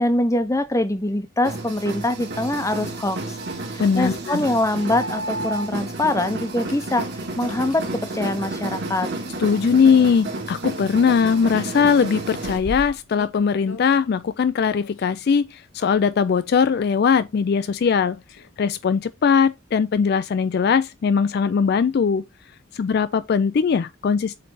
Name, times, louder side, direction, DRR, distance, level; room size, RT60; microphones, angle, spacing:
voice 1, 0.0-3.4 3.7-9.1, left 1 dB, 15° left, 0.6 m, -24 dB
sound 1, 1.4-12.6, right 2 dB, 50° right, 1.8 m, -31 dB
voice 2, 3.8-4.4 9.4-22.3 22.7-24.4, left 6 dB, 50° left, 0.3 m, -20 dB
sound 2, 5.6-5.7 6.5-6.9 7.5-7.9 9.0-9.3 9.8-9.9 10.1-11.1 11.4-14.0 14.6-15.2 15.8-16.7 18.0-18.5 19.0-19.1 21.5-21.6, left 3 dB, 75° left, 0.8 m, -41 dB
7.8 x 3.2 x 4.0 m
head